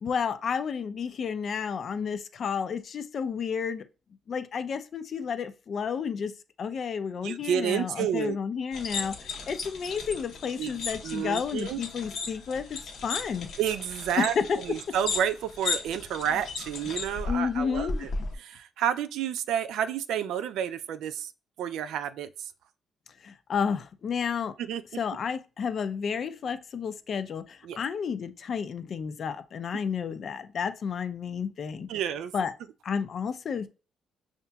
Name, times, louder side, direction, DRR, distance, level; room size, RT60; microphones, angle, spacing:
voice 1, 0.0-3.8 4.3-6.3 6.6-13.5 14.2-14.6 17.3-18.1 23.2-24.5 24.9-31.9 32.3-32.5 32.8-33.7, left 6 dB, 55° left, 0.5 m, -31 dB
voice 2, 7.2-8.4 10.6-10.8 11.0-11.8 13.6-14.3 14.6-18.1 18.4-21.3 21.6-22.5 24.6-24.8 27.6-27.8 31.9-32.3, right 9 dB, 85° right, 0.3 m, -30 dB
sound 1, 8.7-18.3, left 4 dB, 75° left, 0.9 m, -36 dB
5.6 x 2.8 x 2.3 m
cardioid pair, 90°, 0 cm